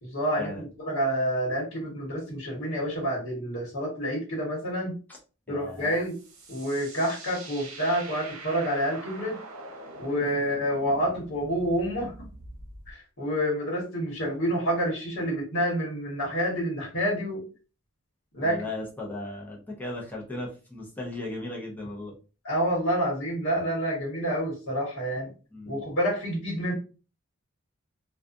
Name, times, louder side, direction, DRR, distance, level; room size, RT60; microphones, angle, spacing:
voice 1, 0.0-0.5 0.8-4.9 5.5-6.1 6.5-9.4 10.0-12.1 12.9-17.4 18.3-18.6 22.4-25.3 25.6-26.7, equal, 70° left, -5 dB, 1.1 m, -28 dB
voice 2, 5.5-6.0 10.2-10.3 18.4-22.1 25.5-25.8, left 2 dB, 10° left, -3 dB, 0.6 m, -37 dB
sound 1, 5.8-12.9, right 2 dB, 75° right, 0.8 m, -44 dB
2.4 x 2.3 x 2.5 m, 0.34 s
head